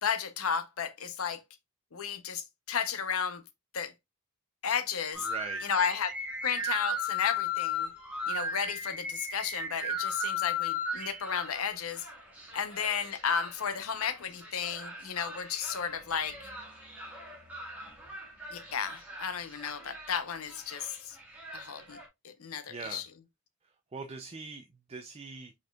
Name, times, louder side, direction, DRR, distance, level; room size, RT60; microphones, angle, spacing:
voice 1, 0.0-1.4 1.9-3.4 3.7-3.9 4.6-5.3 5.6-6.1 6.4-7.9 8.3-12.1 12.5-16.5 18.5-21.2 21.5-22.0 22.2-23.0, left 7 dB, 80° left, 0.7 m, -33 dB
sound 1, 5.1-22.1, left 3 dB, 5° right, 1.6 m, -37 dB
voice 2, 5.3-5.7 22.7-23.0 23.6-25.5, right 4 dB, 25° right, 0.4 m, -42 dB
5.1 x 4.3 x 2.3 m
head